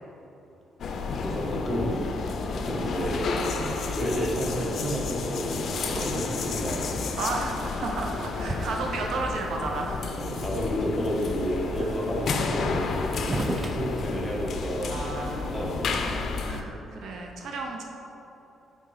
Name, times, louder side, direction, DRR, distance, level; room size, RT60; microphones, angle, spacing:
sound 1, 0.8-16.6, left 4 dB, 60° left, 0.5 m, -31 dB
voice 1, 1.2-2.0 2.5-7.1 10.2-12.9 13.4-15.0 15.5-15.9, equal, ahead, -5 dB, 1.3 m, -31 dB
voice 2, 7.2-10.2 11.8-11.9 14.9-15.8 16.4-17.8, right 3 dB, 70° right, 1 dB, 0.7 m, -33 dB
sound 2, 8.1-9.2 9.8-9.9 10.1-10.6 10.8-11.5 12.4-12.5 12.7-14.7, right 2 dB, 30° right, 0.4 m, -35 dB
5.0 x 3.7 x 5.6 m, 3.0 s
cardioid pair, 90°, 0 cm